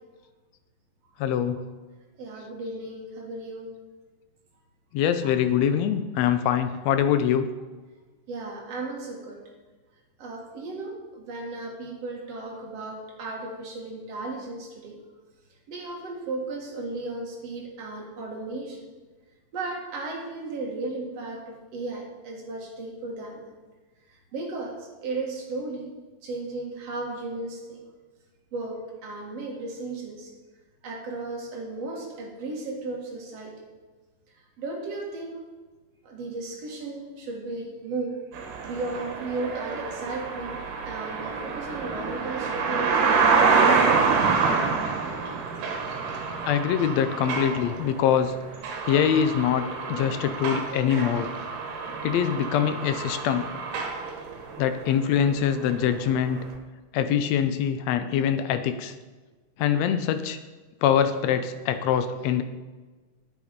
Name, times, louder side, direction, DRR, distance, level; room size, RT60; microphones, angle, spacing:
voice 1, 1.2-1.6 4.9-7.5 46.4-48.3 48.8-51.3 52.0-53.5 54.6-56.4 56.9-58.9 59.6-60.4 60.8-62.4, left 9 dB, 75° left, 10 dB, 1.6 m, -24 dB
voice 2, 2.2-3.7 8.3-9.4 10.2-15.0 15.7-18.9 19.5-23.4 24.3-25.9 26.2-27.8 28.5-30.3 30.8-33.5 34.6-35.4 36.0-38.2 38.6-43.2, right 3 dB, 55° right, 0 dB, 2.7 m, -35 dB
sound 1, 38.3-55.0 55.3-55.8 56.5-56.6, right 5 dB, 80° right, 2.8 m, -27 dB
9.6 x 8.7 x 5.2 m, 1.3 s
omnidirectional pair, 3.6 m